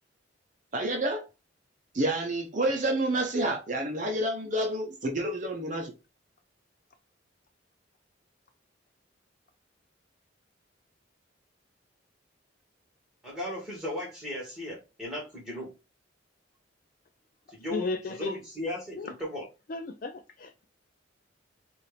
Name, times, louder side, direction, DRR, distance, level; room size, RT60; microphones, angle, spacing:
voice 1, 0.7-1.3 1.9-5.9, right 1 dB, 40° right, 0.7 m, -29 dB
voice 2, 13.2-15.7 17.5-17.9 18.2-19.5, left 1 dB, 5° right, 2.0 m, -36 dB
voice 3, 17.7-18.4 18.9-19.1 19.7-20.6, left 3 dB, 45° left, 0.4 m, -35 dB
4.1 x 2.5 x 3.3 m
head